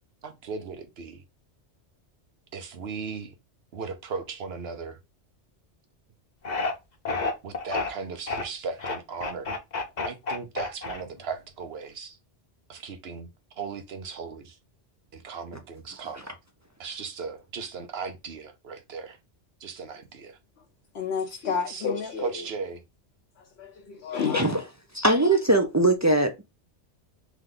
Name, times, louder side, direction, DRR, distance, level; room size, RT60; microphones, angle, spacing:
voice 1, 0.2-1.2 2.5-3.3 3.7-5.0 7.4-9.5 10.0-12.2 12.7-14.6 15.1-16.3 16.8-19.2 19.6-20.4 21.7-21.9 22.2-22.8, right 5 dB, 65° right, 1.1 m, -37 dB
sound 1, 6.4-6.7 7.1-7.9 8.3-8.4 8.8-11.3, left 3 dB, 40° left, 0.9 m, -29 dB
voice 2, 20.9-22.4 23.6-24.5, left 6 dB, 70° left, 0.9 m, -30 dB
voice 3, 24.9-26.4, right 2 dB, 25° right, 0.3 m, -21 dB
3.5 x 3.4 x 3.7 m
omnidirectional pair, 1.2 m